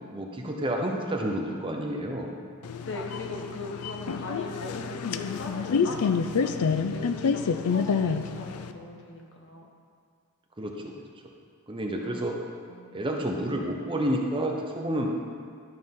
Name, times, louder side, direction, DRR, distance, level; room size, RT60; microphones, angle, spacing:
voice 1, 0.1-2.3 10.6-11.1 11.7-12.4 12.9-15.1, right 1 dB, 25° right, 1 dB, 0.7 m, -30 dB
sound 1, 2.6-8.7, left 5 dB, 90° left, 0.4 m, -28 dB
voice 2, 2.8-9.7 12.0-12.2 12.7-13.2, left 2 dB, 55° left, 1 dB, 1.1 m, -40 dB
11.5 x 6.1 x 3.7 m, 2.2 s
head